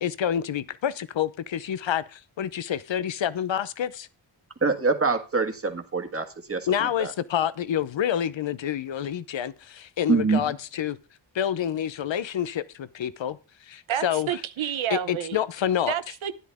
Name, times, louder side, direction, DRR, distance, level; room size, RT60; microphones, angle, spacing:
voice 1, 0.0-4.1 6.7-11.0 11.3-13.4 13.6-14.3 14.9-15.9, left 9 dB, 70° left, 0.8 m, -28 dB
voice 2, 4.6-7.1 10.1-10.4, right 4 dB, 30° right, 1.8 m, -25 dB
voice 3, 13.9-15.4 15.9-16.3, right 10 dB, 85° right, 0.9 m, -29 dB
12.5 x 10.0 x 3.6 m
wide cardioid pair, 75°, 46 cm